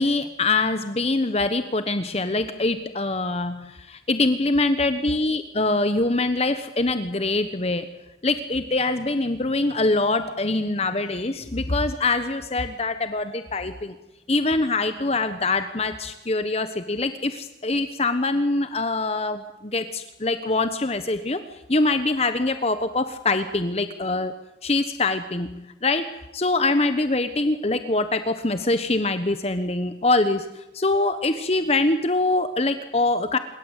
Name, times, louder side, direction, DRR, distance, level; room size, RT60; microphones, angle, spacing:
voice 1, 0.0-7.8 8.2-13.9 14.3-21.4 21.7-24.3 24.6-26.1 26.3-33.4, left 2 dB, 35° left, 10 dB, 1.2 m, -24 dB
26.5 x 22.0 x 8.3 m, 0.91 s
head